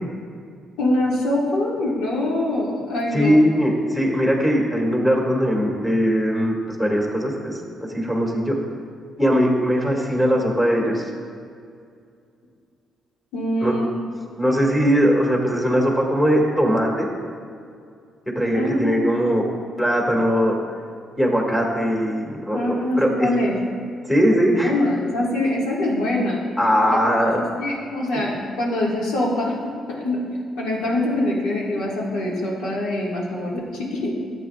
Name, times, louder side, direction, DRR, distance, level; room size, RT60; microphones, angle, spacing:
voice 1, 0.8-3.3 13.3-13.9 18.5-19.0 22.5-23.6 24.6-26.4 26.9-30.2 30.6-34.2, left 1 dB, 90° left, -3 dB, 1.8 m, -24 dB
voice 2, 3.1-7.6 7.9-8.6 9.2-11.1 13.6-13.7 14.4-17.1 18.4-19.4 19.8-20.6 21.2-23.3 24.1-24.7 26.6-27.4, equal, 10° left, -1 dB, 1.9 m, -20 dB
13.0 x 8.3 x 2.4 m, 2.3 s
cardioid pair, 90°, 0 cm